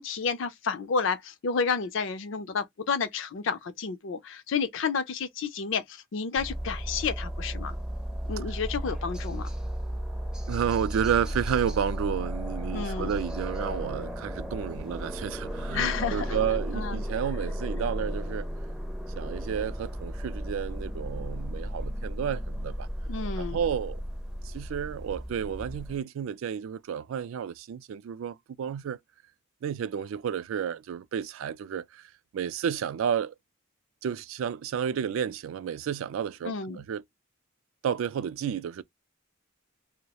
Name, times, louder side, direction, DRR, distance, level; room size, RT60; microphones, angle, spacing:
voice 1, 0.0-7.8 8.3-9.5 12.7-13.1 15.7-16.4 16.7-17.0 23.1-23.6 36.4-36.8, left 5 dB, 60° left, 0.4 m, -30 dB
sound 1, 6.4-26.0, equal, 5° right, 0.4 m, -34 dB
voice 2, 10.5-18.5 19.2-22.9 23.4-24.0 24.4-29.0 29.6-33.3 34.0-37.0 37.8-38.8, right 8 dB, 75° right, 0.3 m, -31 dB
2.3 x 2.0 x 2.8 m
head